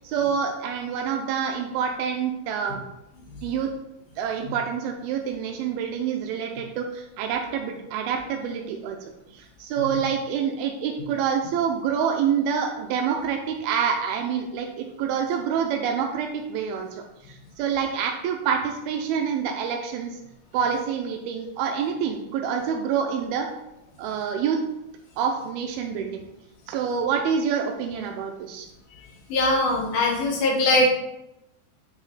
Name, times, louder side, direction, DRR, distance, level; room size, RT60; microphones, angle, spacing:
voice 1, 0.0-2.8 3.4-3.7 4.2-9.0 9.3-20.2 20.5-23.5 24.0-24.6 25.2-26.2 26.7-28.7, right 7 dB, 85° right, 3 dB, 2.6 m, -27 dB
voice 2, 29.3-30.9, left 2 dB, 65° left, -1 dB, 3.0 m, -21 dB
8.3 x 5.1 x 4.0 m, 0.87 s
omnidirectional pair, 4.3 m